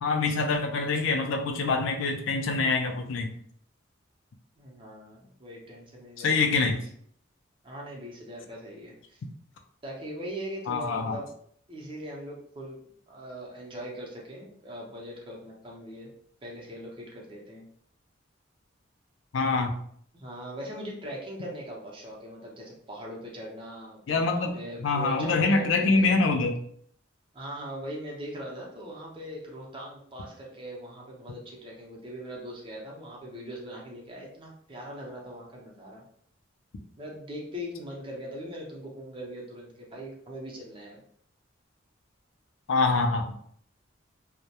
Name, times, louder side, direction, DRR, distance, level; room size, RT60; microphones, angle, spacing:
voice 1, 0.0-3.3 6.2-6.8 10.7-11.2 19.3-19.8 24.1-24.5 24.8-26.6 42.7-43.3, left 3 dB, 75° left, 5 dB, 0.4 m, -25 dB
voice 2, 4.6-6.8 7.6-9.2 9.8-11.3 11.7-12.8 13.1-16.1 16.4-17.7 20.1-26.3 27.3-36.0 37.0-41.0, equal, 25° right, -2 dB, 0.6 m, -40 dB
2.2 x 2.0 x 2.8 m, 0.62 s
head